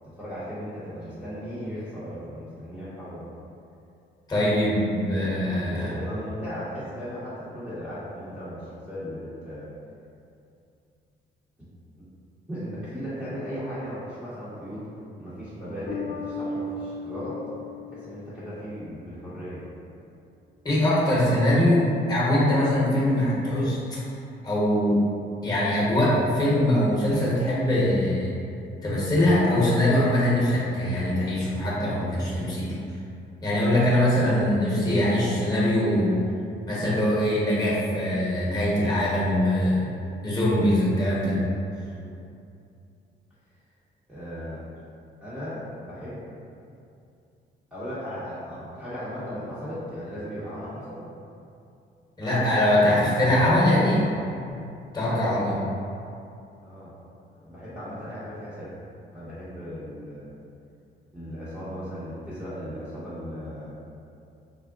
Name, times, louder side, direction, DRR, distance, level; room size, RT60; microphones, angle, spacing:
voice 1, 0.2-3.3 5.2-5.4 5.7-9.7 12.5-14.9 15.2-17.4 17.9-19.7 40.0-40.9 42.0-42.2 44.1-44.6 45.2-46.3 47.7-51.0 52.2-54.2 55.0-55.6 56.6-56.9 57.3-58.7 59.1-60.3 61.1-63.7, equal, 5° right, -13 dB, 0.7 m, -36 dB
voice 2, 4.3-5.9 20.6-24.0 24.4-25.0 25.4-28.3 28.8-32.7 33.4-36.2 36.7-39.9 40.2-41.4 52.2-54.0 54.9-55.6, left 1 dB, 20° left, -6 dB, 1.0 m, -22 dB
Bass guitar, 15.9-18.9, left 2 dB, 60° left, 0.6 m, -36 dB
3.5 x 2.0 x 2.4 m, 2.6 s
cardioid pair, 90°, 20 cm